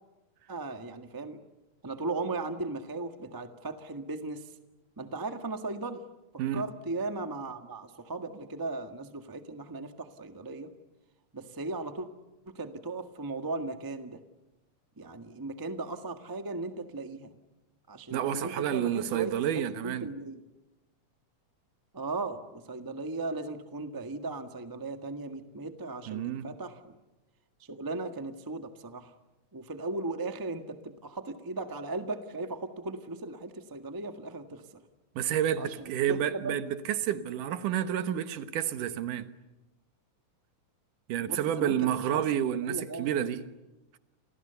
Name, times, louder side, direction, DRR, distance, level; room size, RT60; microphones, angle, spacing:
voice 1, 0.5-1.4 1.8-4.5 5.0-6.0 6.5-10.7 11.3-12.1 12.4-14.2 15.0-17.3 17.9-20.4 21.9-27.0 27.7-29.1 29.5-34.8 35.6-36.5 41.2-42.2 42.7-43.2, right 3 dB, 20° right, 0.5 m, -37 dB
voice 2, 18.1-20.1 26.1-26.5 35.2-39.3 41.1-43.4, right 10 dB, 80° right, 2.8 m, -30 dB
30.0 x 27.5 x 7.0 m
omnidirectional pair, 3.6 m